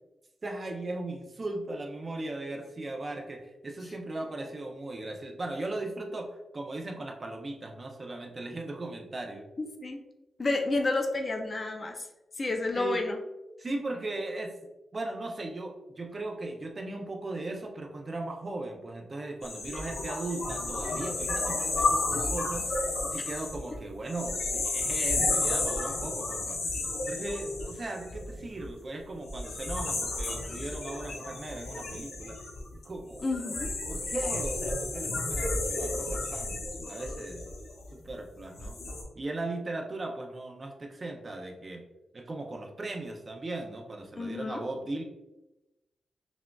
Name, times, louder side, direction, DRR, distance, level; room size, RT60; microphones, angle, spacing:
voice 1, 0.4-9.5 12.7-13.0 13.6-14.6 14.9-26.6 27.1-32.4 32.8-33.3 33.9-36.6 36.9-37.4 37.9-38.8 39.1-41.9 42.1-45.0, right 2 dB, 30° right, 2 dB, 0.4 m, -37 dB
voice 2, 9.6-10.0 10.4-12.1 12.4-13.2 33.2-33.7 44.2-44.6, left 2 dB, 30° left, 4 dB, 0.4 m, -30 dB
sound 1, 19.4-28.6 29.3-38.0 38.5-39.0, left 2 dB, 80° left, 0.9 m, -32 dB
5.9 x 2.3 x 2.3 m, 1.0 s
wide cardioid pair, 155°, 0 cm